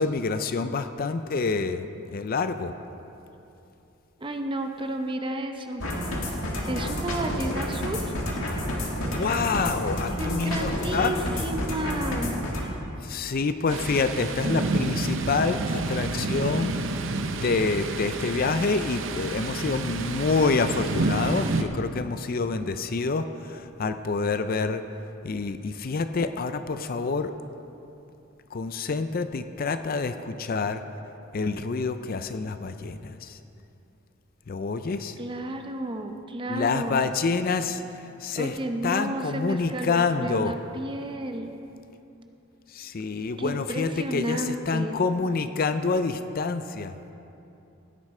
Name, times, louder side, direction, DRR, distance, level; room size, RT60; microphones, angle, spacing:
voice 1, 0.0-2.7 9.0-11.2 13.0-16.7 17.4-24.8 25.2-27.3 28.5-30.8 31.3-33.4 34.5-35.2 36.5-37.8 38.2-38.6 38.8-40.5 42.7-47.0, left 4 dB, 45° left, 10 dB, 0.4 m, -27 dB
voice 2, 4.2-5.8 6.7-8.1 10.2-12.3 35.2-37.0 38.3-41.5 43.4-45.0, right 1 dB, 25° right, 5 dB, 0.7 m, -32 dB
sound 1, 5.8-12.6, equal, 80° left, 1.9 m, -29 dB
Thunder, 13.7-21.6, right 3 dB, 60° right, 0.7 m, -29 dB
16.0 x 9.8 x 4.3 m, 2.8 s
head